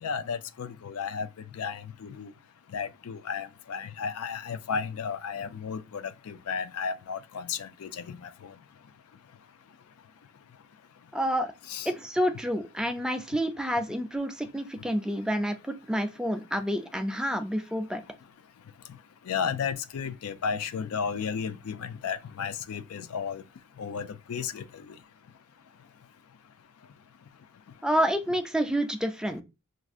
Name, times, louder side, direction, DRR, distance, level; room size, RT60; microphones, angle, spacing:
voice 1, 0.0-1.3 1.6-2.3 2.7-8.5 11.7-11.9 19.3-23.4 23.8-24.6, left 6 dB, 75° left, 0.4 m, -33 dB
voice 2, 11.1-11.5 11.9-18.0 27.8-29.4, equal, 5° right, 0.3 m, -28 dB
6.0 x 2.5 x 2.4 m
head